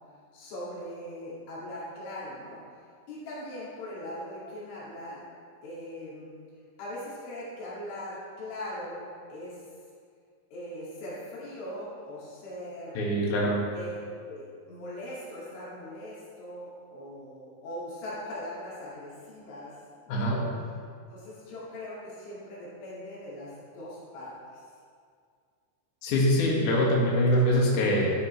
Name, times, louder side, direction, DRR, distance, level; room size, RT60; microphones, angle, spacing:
voice 1, 0.3-2.6 3.1-5.2 5.6-6.3 6.8-9.6 10.5-13.0 13.7-19.8 20.1-20.4 21.1-24.6, left 1 dB, 85° left, -9 dB, 4.8 m, -40 dB
voice 2, 12.9-13.6 20.1-20.4 26.0-28.1, equal, 55° left, -4 dB, 2.7 m, -24 dB
12.5 x 9.2 x 3.2 m, 2.2 s
omnidirectional pair, 5.3 m